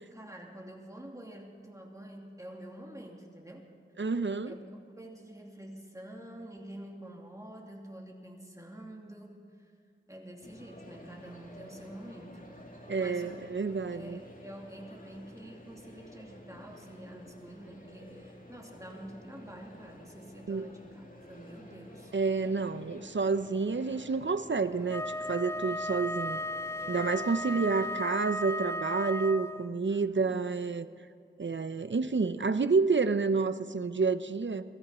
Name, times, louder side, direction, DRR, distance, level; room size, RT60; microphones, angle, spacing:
voice 1, 0.0-3.7 4.4-9.7 10.1-12.4 13.0-13.5 13.9-22.1 29.9-30.6, right 1 dB, 15° right, 0 dB, 2.6 m, -47 dB
voice 2, 4.0-4.5 12.9-14.2 20.5-20.7 22.1-26.4 26.9-30.9 31.4-34.6, right 4 dB, 65° right, 12 dB, 0.7 m, -29 dB
sound 1, 10.4-27.9, left 1 dB, 40° left, 2.4 m, -51 dB
Wind instrument woodwind instrument, 24.9-29.8, left 1 dB, 15° left, 0.4 m, -35 dB
24.0 x 13.5 x 4.4 m, 2.4 s
wide cardioid pair, 50°, 21 cm